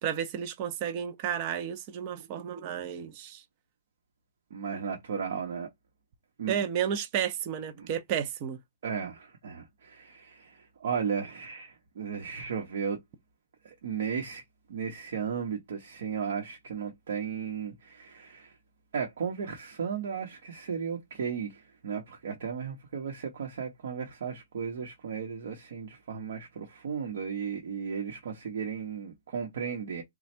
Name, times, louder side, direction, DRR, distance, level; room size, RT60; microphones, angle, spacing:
voice 1, 0.0-3.4 6.5-8.6, right 9 dB, 35° right, 0.6 m, -32 dB
voice 2, 4.5-5.7 6.4-6.5 7.8-7.9 8.8-13.0 13.6-14.4 14.7-18.5 18.9-30.0, right 6 dB, 60° right, 1.0 m, -35 dB
3.2 x 2.3 x 4.3 m
hypercardioid pair, 150°, 0 cm